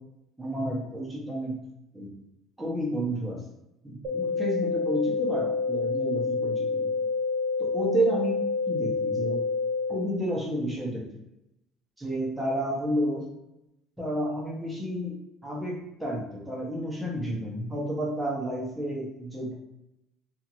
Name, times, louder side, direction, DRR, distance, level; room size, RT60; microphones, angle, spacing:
voice 1, 0.4-1.6 1.9-2.1 2.6-3.4 3.8-6.9 7.6-9.4 9.9-11.1 12.0-13.3 14.0-15.1 15.4-19.5, right 1 dB, 5° right, -4 dB, 1.0 m, -31 dB
sound 1, 4.0-10.0, left 4 dB, 70° right, 0.9 m, -28 dB
2.8 x 2.5 x 2.9 m, 0.87 s
cardioid pair, 130°, 0 cm